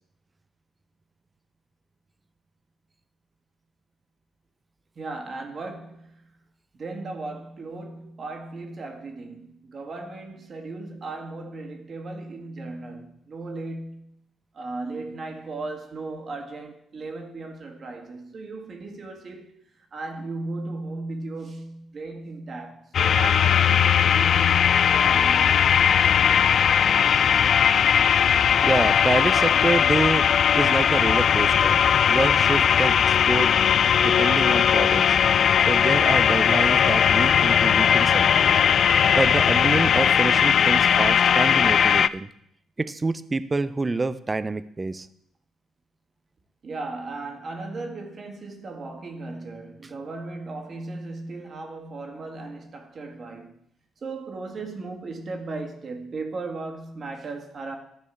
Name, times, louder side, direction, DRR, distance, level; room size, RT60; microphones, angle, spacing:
voice 1, 5.0-6.3 6.7-14.1 14.5-19.5 19.9-25.7 46.6-53.6 54.0-57.8, right 3 dB, 45° right, 1.9 m, -36 dB
sound 1, 22.9-42.1, left 8 dB, 60° left, 0.3 m, -19 dB
voice 2, 28.6-30.3 30.5-31.8 32.1-33.5 34.0-35.2 35.7-38.5 39.1-42.3 42.8-45.1, right 3 dB, 25° right, 0.5 m, -27 dB
13.0 x 4.4 x 7.0 m
cardioid pair, 90°, 0 cm